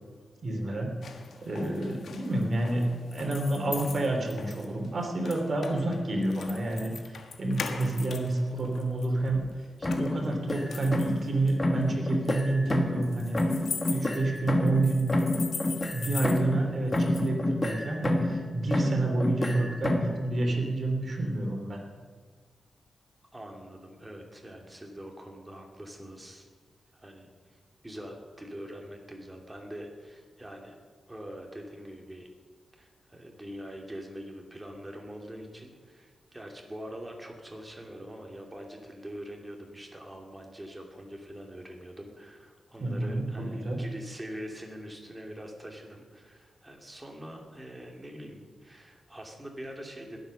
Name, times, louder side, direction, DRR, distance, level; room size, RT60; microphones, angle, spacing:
voice 1, 0.4-1.0 1.4-9.6 9.9-13.4 13.9-15.1 15.5-21.8 42.8-43.8, right 2 dB, 45° right, 2 dB, 2.9 m, -29 dB
sound 1, 1.0-17.3, left 5 dB, 70° left, 1.4 m, -42 dB
sound 2, 9.8-11.3 11.6-13.1 13.3-16.7 16.9-18.4 18.7-20.2, left 1 dB, 25° left, 1.6 m, -29 dB
voice 2, 23.3-26.5 26.9-30.8 31.1-32.3 32.8-50.2, equal, 15° right, 1 dB, 2.6 m, -44 dB
20.5 x 8.0 x 6.5 m, 1.5 s
wide cardioid pair, 115°, 0 cm